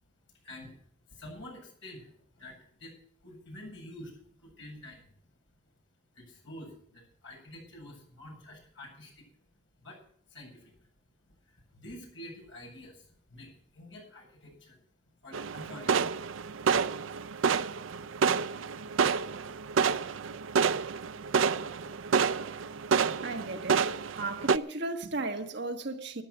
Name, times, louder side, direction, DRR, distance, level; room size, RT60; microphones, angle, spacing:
voice 1, 0.4-0.7 1.1-2.9 3.2-5.1 6.1-9.3 9.8-10.0 10.3-10.9 11.4-14.8 15.2-16.1 19.3-19.5, left 1 dB, 70° left, 7.9 m, -48 dB
sound 1, 15.3-24.6, right 6 dB, 80° right, 0.5 m, -29 dB
voice 2, 23.2-23.9 24.2-26.2, right 2 dB, 60° right, 1.4 m, -35 dB
13.5 x 11.0 x 6.1 m
head